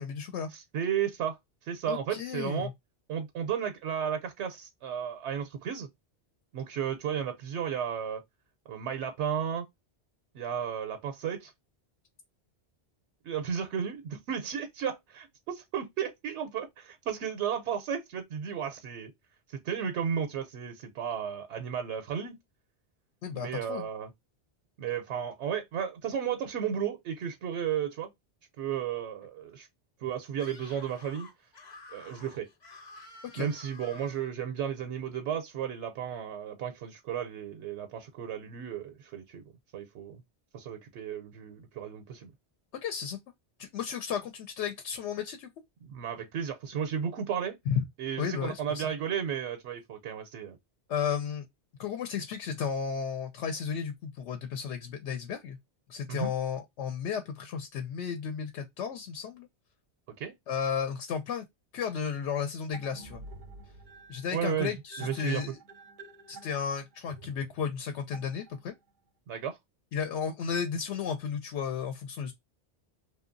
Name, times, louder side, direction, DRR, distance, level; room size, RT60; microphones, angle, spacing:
voice 1, 0.0-0.5 1.9-2.7 23.2-23.9 33.3-33.5 42.8-43.2 43.6-45.5 47.7-47.9 48.2-48.9 50.9-51.5 51.8-55.6 55.9-59.5 60.5-61.4 61.7-63.2 64.1-65.6 66.3-68.7 69.9-72.3, left 7 dB, 90° left, 0.9 m, -33 dB
voice 2, 0.5-1.4 1.6-2.7 3.1-5.9 6.5-8.2 8.7-9.7 10.3-11.5 13.2-19.1 19.5-22.4 23.3-24.1 24.8-28.1 28.6-29.7 30.0-31.3 31.9-32.5 33.4-39.4 39.7-40.2 40.5-42.3 45.8-47.6 48.0-50.6 56.1-56.3 60.2-60.3 64.3-65.4 69.3-69.6, right 8 dB, 85° right, 0.9 m, -34 dB
Screaming, 30.3-34.3, left 3 dB, 45° left, 0.8 m, -50 dB
sound 1, 62.7-68.9, right 3 dB, 60° right, 0.6 m, -50 dB
2.8 x 2.2 x 2.4 m
omnidirectional pair, 1.1 m